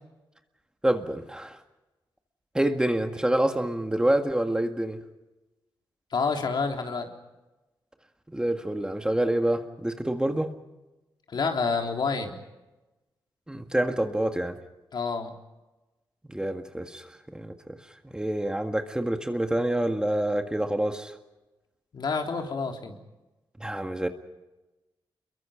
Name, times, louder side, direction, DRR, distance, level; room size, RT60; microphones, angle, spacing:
voice 1, 0.8-1.6 2.5-5.0 8.3-10.5 13.5-14.6 16.3-17.1 17.3-17.8 18.1-21.1 23.6-24.1, right 1 dB, 10° right, 6 dB, 1.8 m, -27 dB
voice 2, 6.1-7.1 11.3-12.4 14.9-15.3 21.9-23.0, left 4 dB, 60° left, 3 dB, 3.5 m, -28 dB
29.5 x 23.0 x 5.1 m, 1.1 s
wide cardioid pair, 115°, 8 cm